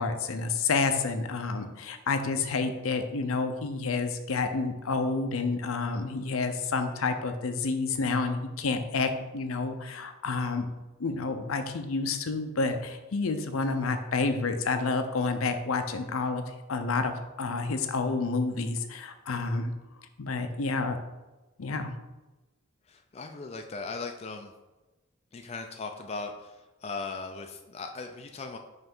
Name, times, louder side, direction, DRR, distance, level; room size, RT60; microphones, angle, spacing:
voice 1, 0.0-10.7 11.0-16.4 16.7-19.7 20.2-21.0 21.6-21.9, left 4 dB, 75° left, 8 dB, 0.6 m, -29 dB
voice 2, 22.9-24.5 25.3-28.6, left 4 dB, 30° left, 4 dB, 0.4 m, -38 dB
5.7 x 3.2 x 5.3 m, 1.1 s
head